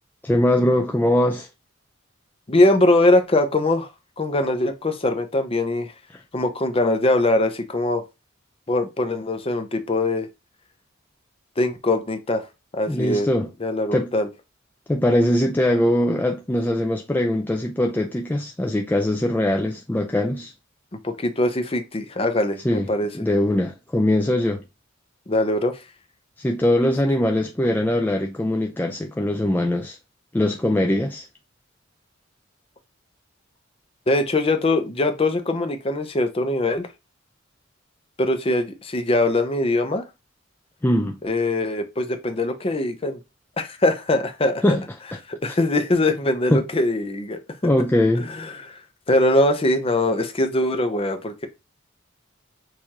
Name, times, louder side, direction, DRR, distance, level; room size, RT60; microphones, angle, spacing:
voice 1, 0.2-1.5 12.9-13.5 13.9-14.1 14.9-20.5 22.6-22.9 23.1-24.6 26.4-30.0 30.3-31.3 40.8-41.2 44.6-44.8 45.1-45.2 46.5-46.6 47.6-48.3, left 1 dB, 10° left, 0.4 m, -21 dB
voice 2, 2.5-3.9 4.2-5.9 6.3-8.0 8.7-10.3 11.6-12.5 12.7-13.3 13.6-14.3 21.0-23.1 25.3-25.8 34.1-36.9 38.2-40.0 41.2-43.2 43.6-44.8 45.3-47.7 48.1-48.8 49.1-51.5, left 2 dB, 30° left, 0.7 m, -22 dB
6.4 x 2.6 x 2.9 m
head